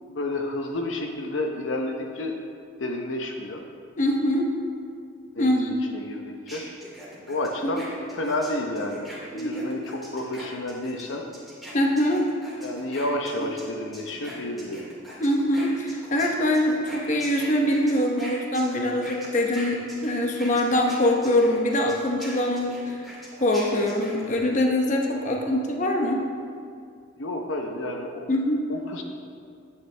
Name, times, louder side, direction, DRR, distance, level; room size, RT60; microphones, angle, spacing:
voice 1, 0.1-2.4 2.8-3.6 5.3-6.6 7.3-11.2 12.6-14.9 25.3-25.5 27.2-28.3 28.7-29.0, left 1 dB, 75° left, 2 dB, 0.8 m, -31 dB
voice 2, 4.0-4.5 5.4-5.8 7.7-7.8 9.3-9.7 11.7-12.2 13.4-13.5 15.2-23.0 23.4-26.2 28.3-28.6, left 1 dB, 40° left, 1 dB, 0.9 m, -23 dB
sound 1, 6.5-13.7 13.9-24.4, equal, ahead, 2.4 m, -42 dB
10.5 x 9.0 x 3.3 m, 2.4 s
head